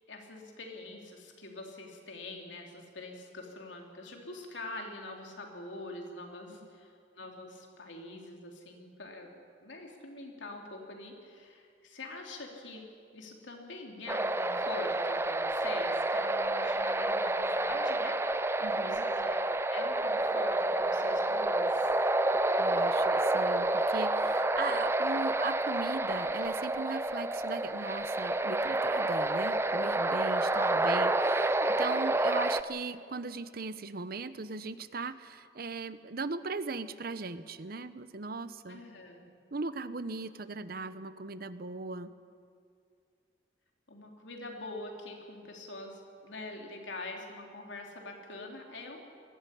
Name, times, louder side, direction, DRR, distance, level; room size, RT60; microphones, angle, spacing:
voice 1, 0.1-12.8 13.1-18.2 18.7-21.9 30.6-30.7 38.7-39.2 43.9-49.0, left 2 dB, 90° left, 1 dB, 3.4 m, -44 dB
sound 1, 14.1-32.6, right 2 dB, 15° right, 0.6 m, -29 dB
voice 2, 18.6-19.1 22.6-38.8 39.5-42.1, right 3 dB, 55° right, 13 dB, 0.8 m, -38 dB
21.0 x 14.5 x 10.0 m, 2.2 s
head